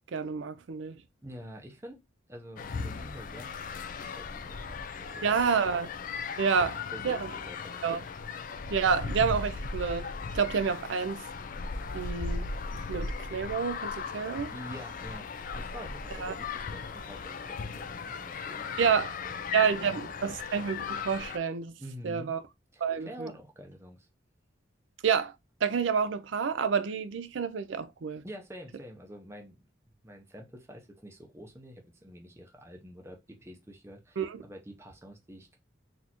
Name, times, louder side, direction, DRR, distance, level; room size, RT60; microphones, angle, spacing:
voice 1, 0.1-1.0 5.2-5.9 6.4-6.7 7.0-7.3 7.8-8.0 8.7-10.1 10.3-11.2 11.9-12.5 12.9-14.5 16.2-16.3 18.8-19.1 19.5-21.7 22.0-22.4 22.8-23.3 25.0-25.3 25.6-28.2 34.2-34.4, right 6 dB, 80° right, 0.4 m, -28 dB
voice 2, 1.2-2.0 2.3-5.2 5.5-5.6 6.6-7.8 12.9-13.0 14.5-15.3 15.5-18.7 19.2-19.4 19.8-20.0 21.8-22.3 22.7-24.1 28.2-29.6 30.0-35.6, equal, 15° right, 0.7 m, -47 dB
Ambience Children Playing Distant A, 2.6-21.4, left 4 dB, 45° left, 0.4 m, -37 dB
4.1 x 2.6 x 2.9 m
head